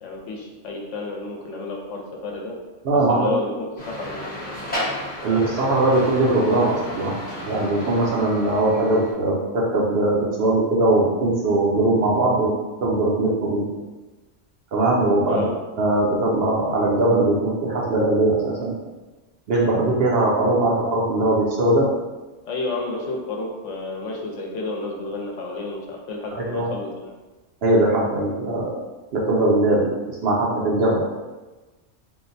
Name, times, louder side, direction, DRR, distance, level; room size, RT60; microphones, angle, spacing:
voice 1, 0.0-2.6 3.1-4.5 15.3-15.5 22.5-26.9, left 3 dB, 75° left, 0 dB, 0.9 m, -31 dB
voice 2, 2.8-3.3 5.2-7.2 7.5-12.5 12.8-13.6 14.7-15.5 15.8-18.7 19.5-21.9 26.4-26.7 27.6-28.7 29.1-29.9 30.2-31.0, right 2 dB, 60° right, -4 dB, 0.8 m, -20 dB
sound 1, 3.8-9.1, left 1 dB, 10° left, 0.5 m, -33 dB
3.7 x 2.1 x 2.6 m, 1.2 s
omnidirectional pair, 1.3 m